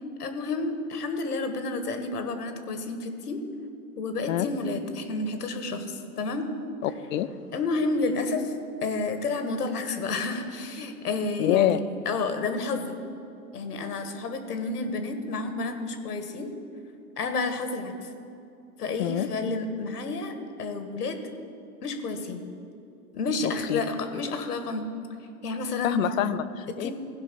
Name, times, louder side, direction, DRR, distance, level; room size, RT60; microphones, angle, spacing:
voice 1, 0.2-3.4 4.0-6.5 7.5-8.5 8.8-12.9 13.5-16.5 17.2-18.1 18.8-20.3 20.6-21.2 21.8-22.5 23.1-24.9 25.4-26.0 26.7-26.9, left 3 dB, 85° left, 8 dB, 1.4 m, -30 dB
voice 2, 6.8-7.3 11.4-11.8 19.0-19.3 23.4-23.8 25.8-26.9, left 13 dB, 60° left, 13 dB, 0.7 m, -26 dB
15.5 x 5.3 x 6.7 m, 2.6 s
hypercardioid pair, 110°, 45 cm